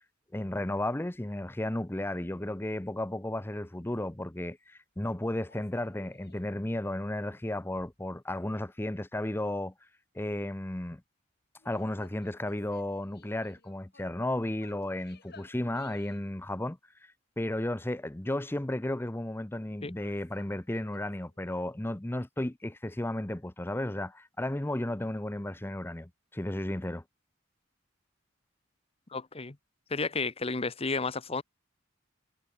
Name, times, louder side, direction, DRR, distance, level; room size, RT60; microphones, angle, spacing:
voice 1, 0.3-9.7 10.1-11.0 11.6-27.0, left 1 dB, 10° left, 0.7 m, -34 dB
sound 1, 5.5-6.6 11.6-14.2 14.6-16.4 19.8-21.6, left 4 dB, 55° left, 6.4 m, -59 dB
voice 2, 29.1-29.6 29.9-31.4, left 4 dB, 30° left, 1.0 m, -32 dB
head